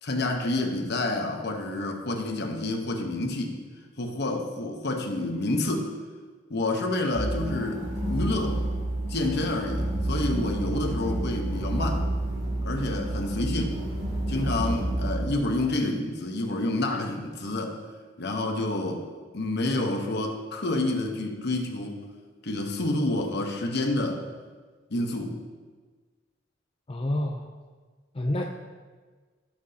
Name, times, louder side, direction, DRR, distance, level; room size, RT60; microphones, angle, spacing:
voice 1, 0.0-3.6 4.0-5.9 6.5-8.6 9.1-12.0 12.6-13.8 14.3-17.8 18.2-19.1 19.3-22.0 22.4-24.2 24.9-25.4, left 2 dB, 60° left, 3 dB, 1.1 m, -28 dB
sound 1, 7.1-15.2, right 1 dB, 70° right, 2.9 m, -29 dB
voice 2, 26.9-27.5 28.1-28.4, left 1 dB, 30° left, 1 dB, 0.5 m, -28 dB
16.5 x 6.1 x 2.9 m, 1.4 s
head